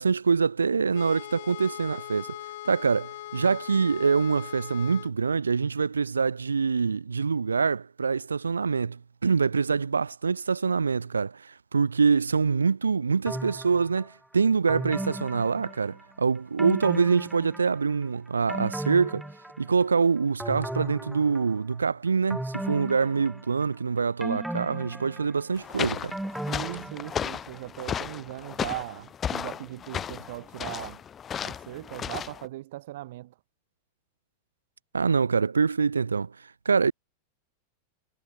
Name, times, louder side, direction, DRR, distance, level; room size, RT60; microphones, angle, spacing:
voice 1, 0.0-2.4 2.6-19.2 19.6-26.1 34.9-36.9, right 5 dB, 75° right, 0.5 m, -25 dB
sound 1, 0.9-5.1, left 16 dB, 55° left, 4.0 m, -40 dB
sound 2, 13.3-14.1 14.7-16.1 16.6-17.9 18.3-19.9 20.4-21.7 22.3-23.7 24.2-27.5 27.8-27.9, right 1 dB, 5° right, 5.1 m, -36 dB
sound 3, 25.6-32.5, left 8 dB, 25° left, 1.0 m, -35 dB
voice 2, 26.5-31.0 31.4-33.3, right 16 dB, 55° right, 1.5 m, -39 dB
figure-of-eight pair, 90°, 0 cm